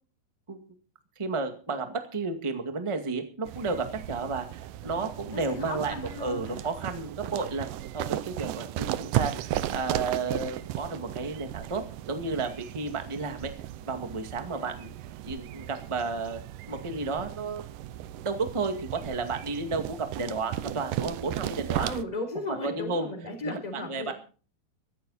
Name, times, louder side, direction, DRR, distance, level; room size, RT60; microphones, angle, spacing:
voice 1, 1.1-11.8 12.1-13.5 13.8-14.9 15.2-16.4 16.7-17.7 18.2-21.9 22.6-23.1 23.4-24.1, right 4 dB, 40° right, 6 dB, 0.4 m, -32 dB
sound 1, 3.5-22.0, right 13 dB, 80° right, 1.9 m, -35 dB
voice 2, 5.3-6.6 21.8-24.1, left 2 dB, 10° left, 5 dB, 3.4 m, -36 dB
16.5 x 14.5 x 4.2 m, 0.39 s
omnidirectional pair, 4.7 m